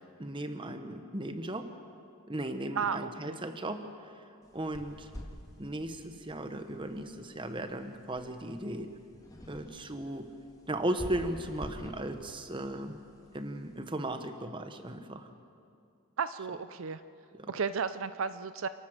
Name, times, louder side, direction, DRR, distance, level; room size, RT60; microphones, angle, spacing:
voice 1, 0.2-1.7 2.3-4.1 4.5-5.1 5.6-8.9 9.5-10.3 10.7-13.0 13.3-15.3 17.3-17.5, right 1 dB, 25° right, 8 dB, 1.1 m, -36 dB
voice 2, 2.8-3.4 16.2-17.0 17.5-18.7, right 6 dB, 70° right, 13 dB, 0.5 m, -33 dB
sound 1, 4.4-13.8, equal, 15° left, 1.7 m, -49 dB
27.5 x 12.5 x 7.7 m, 2.4 s
head